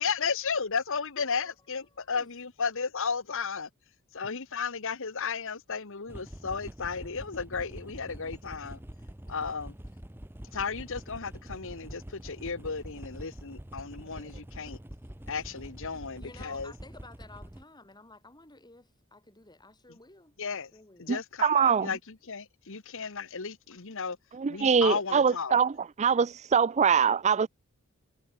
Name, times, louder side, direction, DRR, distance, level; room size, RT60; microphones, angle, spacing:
voice 1, 0.0-3.7 4.1-8.8 9.3-9.7 10.5-14.8 15.3-16.7 20.4-20.7 21.0-24.2 24.5-25.6, left 5 dB, 65° left, 1.4 m, -34 dB
voice 2, 1.2-1.5 1.9-2.3 16.1-21.1, left 2 dB, 20° left, 4.6 m, -53 dB
sound 1, 6.1-17.6, right 1 dB, 10° right, 0.8 m, -45 dB
voice 3, 21.1-21.9 24.4-25.7 26.0-27.5, right 6 dB, 30° right, 0.4 m, -23 dB
head